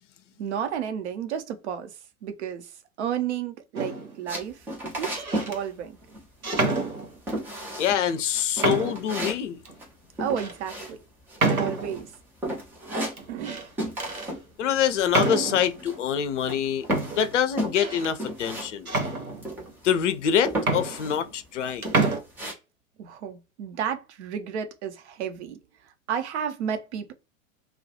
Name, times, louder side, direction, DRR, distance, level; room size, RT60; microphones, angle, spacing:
voice 1, 0.4-1.9 2.2-2.7 3.0-4.7 5.0-6.0 10.2-11.0 11.5-12.1 13.3-13.7 23.0-25.6 26.1-27.1, right 8 dB, 55° right, 0.6 m, -32 dB
sound 1, 3.8-4.2 5.0-5.6 6.4-7.4 8.1-8.2 8.6-9.1 9.7-9.8 10.4-10.6 11.4-12.1 13.2-13.7 14.0-14.3 15.1-15.7 16.5-16.6 16.9-18.1 18.9-19.7 20.3-20.4 20.6-21.6 21.8-22.2, right 3 dB, 90° right, 0.8 m, -28 dB
sound 2, 4.3-5.6 5.8-6.2 6.5-7.0 7.3-8.0 8.3-11.4 11.7-12.1 12.4-13.5 13.8-14.4 14.7-16.1 16.5-18.7 19.0-19.1 19.4-20.0 20.4-21.2 21.6-22.5, right 1 dB, 5° right, 0.3 m, -34 dB
voice 2, 7.8-9.6 14.6-18.9 19.8-21.9, left 9 dB, 60° left, 0.5 m, -25 dB
2.2 x 2.0 x 2.7 m
figure-of-eight pair, 95°, 42 cm